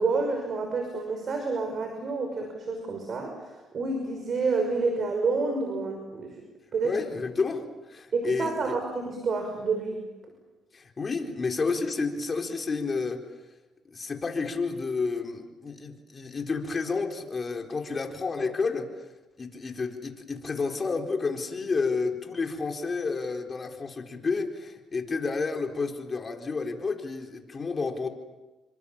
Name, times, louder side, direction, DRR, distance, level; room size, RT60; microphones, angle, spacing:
voice 1, 0.0-3.5 3.7-6.4 6.7-7.0 8.1-10.0, right 4 dB, 50° right, 4 dB, 5.9 m, -29 dB
voice 2, 6.8-8.8 10.7-13.2 13.9-18.9 19.4-28.1, left 4 dB, 35° left, 3 dB, 4.2 m, -30 dB
29.5 x 25.5 x 7.3 m, 1.1 s
cardioid pair, 90°, 0 cm